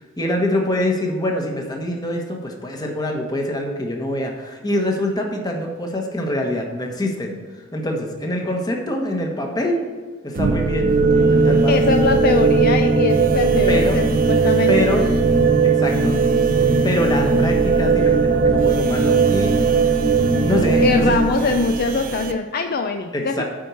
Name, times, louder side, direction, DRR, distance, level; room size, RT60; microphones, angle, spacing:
voice 1, 0.2-9.8 10.2-11.8 13.7-14.0 14.7-15.0 15.6-16.2 16.8-19.5 20.4-21.2 23.1-23.4, left 1 dB, 20° left, 1 dB, 1.2 m, -24 dB
sound 1, 10.4-22.3, right 4 dB, 45° right, 0.6 m, -18 dB
voice 2, 11.7-14.7 20.8-23.4, left 4 dB, 50° left, 6 dB, 0.4 m, -22 dB
8.8 x 4.6 x 6.9 m, 1.4 s
head